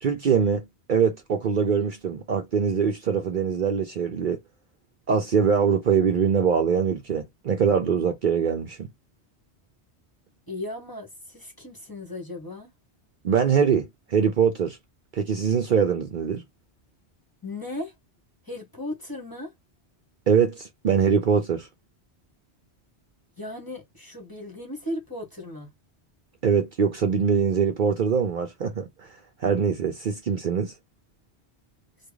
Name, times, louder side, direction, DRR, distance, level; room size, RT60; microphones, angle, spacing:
voice 1, 0.0-4.4 5.1-8.9 13.2-14.8 15.1-16.4 20.3-21.7 26.4-29.1 29.4-30.7, right 6 dB, 55° right, 0.7 m, -23 dB
voice 2, 10.5-12.7 17.4-17.9 18.4-19.5 23.4-25.7, left 1 dB, 20° left, 0.9 m, -36 dB
3.3 x 2.2 x 3.4 m
omnidirectional pair, 1.1 m